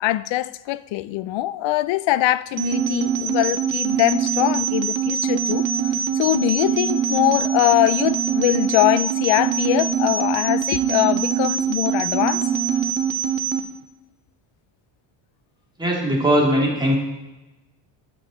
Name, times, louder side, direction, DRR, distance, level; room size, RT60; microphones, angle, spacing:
voice 1, 0.0-5.7 6.1-12.4, left 16 dB, 70° left, 0.6 m, -22 dB
sound 1, 2.6-13.6, right 7 dB, 75° right, 1.4 m, -23 dB
voice 2, 15.8-16.9, equal, 10° right, 2.7 m, -19 dB
11.5 x 6.1 x 7.7 m
cardioid pair, 165°, 47 cm